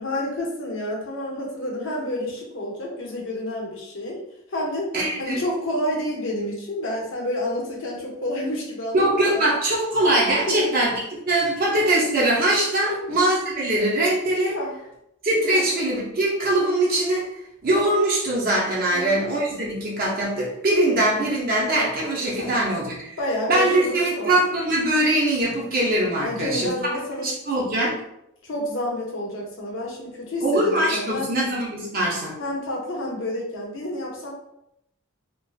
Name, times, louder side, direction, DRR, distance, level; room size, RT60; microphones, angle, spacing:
voice 1, 0.0-4.2 4.5-4.9 5.2-9.5 10.5-10.6 12.9-13.2 14.5-14.8 15.5-15.6 18.9-19.3 22.4-22.6 23.2-24.4 26.2-27.3 28.4-31.3 32.4-34.3, left 1 dB, 65° left, -2 dB, 0.7 m, -29 dB
voice 2, 4.9-5.4 8.9-14.6 15.2-17.3 17.6-23.1 23.5-26.7 27.2-28.0 30.4-32.4, right 1 dB, 45° right, -4 dB, 0.5 m, -22 dB
2.5 x 2.3 x 2.3 m, 0.80 s
head